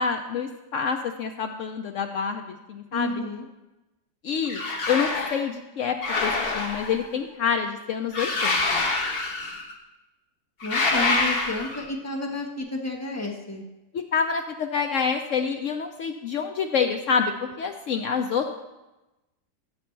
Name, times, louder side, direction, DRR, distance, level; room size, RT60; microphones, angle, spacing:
voice 1, 0.0-3.2 4.2-8.8 13.9-18.5, left 6 dB, 80° left, 5 dB, 0.7 m, -27 dB
voice 2, 2.9-3.4 10.6-13.6, left 1 dB, 10° left, 0 dB, 0.7 m, -31 dB
sound 1, 4.5-5.4 6.0-7.1 8.1-9.7 10.6-11.9, left 3 dB, 40° left, 1.0 m, -26 dB
14.0 x 6.8 x 3.2 m, 1.0 s
omnidirectional pair, 1.9 m